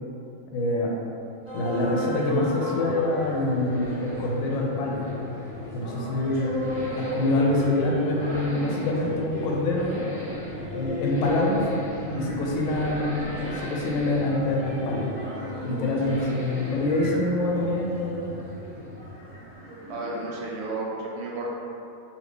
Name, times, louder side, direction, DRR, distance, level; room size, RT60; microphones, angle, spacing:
voice 1, 0.5-0.9 1.5-5.0 5.7-10.0 10.7-11.8 12.1-15.1 15.6-18.2, left 2 dB, 80° left, -2 dB, 1.0 m, -26 dB
Accelerating revving vroom, 1.1-19.3 19.5-19.6, equal, 20° left, 0.3 m, -40 dB
sound 1, 1.4-20.7, equal, 30° right, 0.6 m, -36 dB
voice 2, 15.8-16.2 19.9-21.5, right 2 dB, 65° right, -3 dB, 0.8 m, -33 dB
2.7 x 2.7 x 3.5 m, 2.7 s
omnidirectional pair, 1.4 m